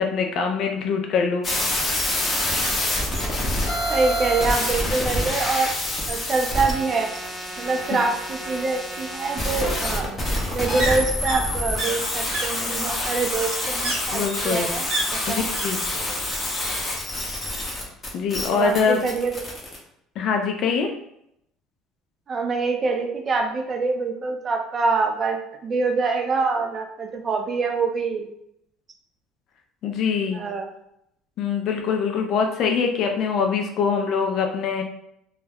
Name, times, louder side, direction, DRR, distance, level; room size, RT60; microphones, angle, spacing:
voice 1, 0.0-1.5 7.9-8.0 14.1-14.7 15.3-15.8 18.1-19.0 20.2-20.9 29.8-30.4 31.4-34.8, left 5 dB, 50° left, 3 dB, 0.3 m, -23 dB
sound 1, 1.4-19.8, left 1 dB, 25° left, 0.7 m, -27 dB
voice 2, 3.9-5.7 6.1-7.2 7.6-10.2 10.5-15.4 18.5-19.5 22.3-25.4 25.6-28.3 30.3-30.7, right 4 dB, 30° right, 4 dB, 0.4 m, -25 dB
sound 2, 5.9-6.6 7.9-15.7 15.9-16.5 16.8-17.8 18.1-18.2, right 2 dB, 75° right, 0.7 m, -33 dB
2.3 x 2.0 x 3.4 m, 0.78 s
cardioid pair, 140°, 0 cm